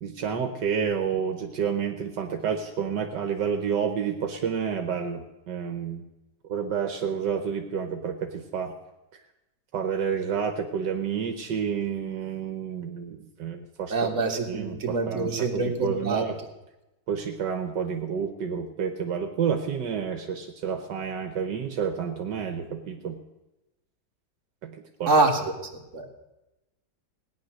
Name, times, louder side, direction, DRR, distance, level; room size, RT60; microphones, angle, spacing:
voice 1, 0.0-6.0 6.5-8.7 9.7-14.1 14.5-16.4 17.1-23.2 24.6-25.1, right 7 dB, 75° right, 6 dB, 1.7 m, -29 dB
voice 2, 13.9-16.2 25.1-25.5 25.9-26.1, right 3 dB, 45° right, 1 dB, 2.2 m, -25 dB
17.0 x 10.0 x 6.5 m, 0.98 s
omnidirectional pair, 1.9 m